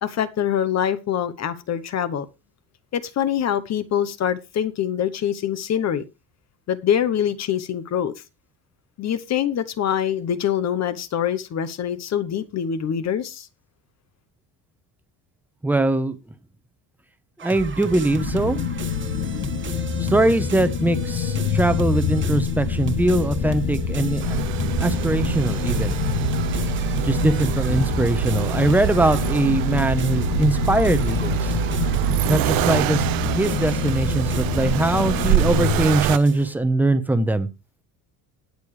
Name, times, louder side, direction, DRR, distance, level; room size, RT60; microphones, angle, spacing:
voice 1, 0.0-2.3 2.9-6.1 6.7-8.1 9.0-13.5, left 9 dB, 40° left, 1.0 m, -24 dB
voice 2, 15.6-16.2 17.4-18.7 20.0-24.4 24.8-26.0 27.0-31.6 32.3-37.5, right 2 dB, 5° right, 0.9 m, -22 dB
sound 1, 17.4-36.5, right 6 dB, 30° right, 1.6 m, -37 dB
sound 2, 18.1-35.8, left 7 dB, 70° left, 2.0 m, -26 dB
Accelerating revving vroom, 24.2-36.2, right 18 dB, 60° right, 0.5 m, -25 dB
19.5 x 6.8 x 3.3 m
cardioid pair, 150°, 39 cm